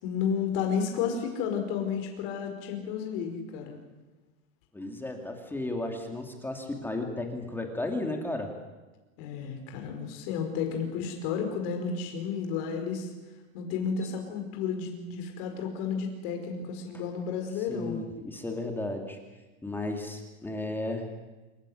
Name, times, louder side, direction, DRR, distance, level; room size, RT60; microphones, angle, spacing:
voice 1, 0.0-3.8 9.2-13.1 13.5-18.0, left 6 dB, 45° left, 4 dB, 4.9 m, -32 dB
voice 2, 4.7-8.5 17.7-19.2 19.6-21.1, left 2 dB, 5° left, 3 dB, 2.2 m, -34 dB
27.0 x 15.0 x 9.9 m, 1.2 s
supercardioid pair, 160°, 41 cm